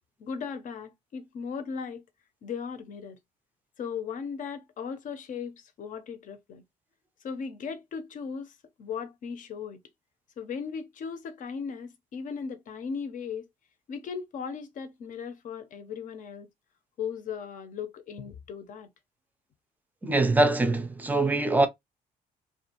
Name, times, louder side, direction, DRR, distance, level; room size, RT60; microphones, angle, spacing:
voice 1, 0.2-2.0 2.4-3.2 3.8-6.6 7.2-9.8 10.4-13.5 13.9-16.5 17.0-18.9, left 6 dB, 50° left, 0.6 m, -37 dB
voice 2, 20.0-21.7, right 2 dB, 10° right, 0.4 m, -23 dB
2.5 x 2.4 x 2.8 m
cardioid pair, 110°, 17 cm